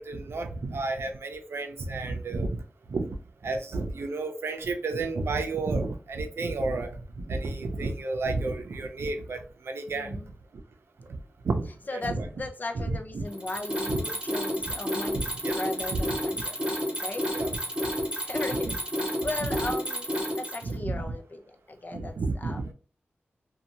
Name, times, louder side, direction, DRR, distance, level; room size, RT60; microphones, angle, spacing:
voice 1, 0.0-2.6 2.9-10.2 11.1-11.2 11.4-12.3 12.7-13.2 13.9-14.0 14.6-14.8 15.1-15.3 15.9-16.1 17.3-17.5 19.4-19.5 20.6-21.1 21.9-22.7, right 3 dB, 90° right, 0.5 m, -31 dB
voice 2, 9.9-10.3 11.9-15.3 15.5-16.6 17.0-17.3 18.2-18.7 19.0-20.1 20.4-21.4 21.7-22.7, left 2 dB, 45° left, 0.5 m, -37 dB
Mechanisms, 13.3-20.7, equal, 25° right, 1.2 m, -30 dB
2.6 x 2.3 x 2.8 m
wide cardioid pair, 100°, 4 cm